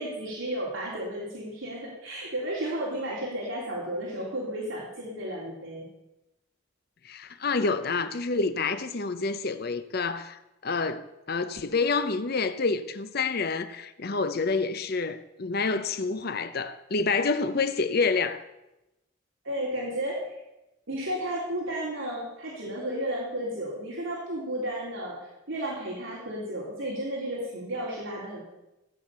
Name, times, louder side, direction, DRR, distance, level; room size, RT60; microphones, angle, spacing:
voice 1, 0.0-5.9 19.4-20.4 20.9-28.4, right 1 dB, 70° right, 3.4 m, -33 dB
voice 2, 7.0-18.4, left 4 dB, 50° left, 0.7 m, -28 dB
15.5 x 8.6 x 6.8 m
head